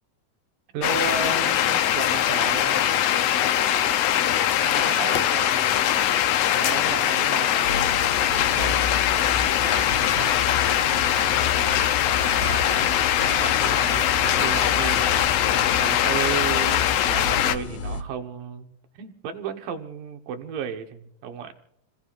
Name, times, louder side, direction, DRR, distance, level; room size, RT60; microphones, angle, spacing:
voice 1, 0.7-3.0 4.6-6.1 6.5-7.8 8.3-8.8 12.4-12.9 13.4-15.5 15.8-21.5, right 7 dB, 90° right, 5 dB, 2.9 m, -34 dB
sound 1, 0.8-17.6, left 11 dB, 85° left, 1.4 m, -22 dB
voice 2, 2.5-2.9 3.6-4.2 4.7-5.4 8.9-9.0 10.0-10.5 11.0-11.8 16.1-16.4, right 5 dB, 75° right, 1 dB, 3.1 m, -40 dB
sound 2, 7.6-18.0, left 5 dB, 70° left, 2.6 m, -32 dB
sound 3, 9.1-15.2, left 2 dB, 30° left, 6.1 m, -35 dB
28.5 x 19.5 x 2.5 m, 0.71 s
omnidirectional pair, 3.7 m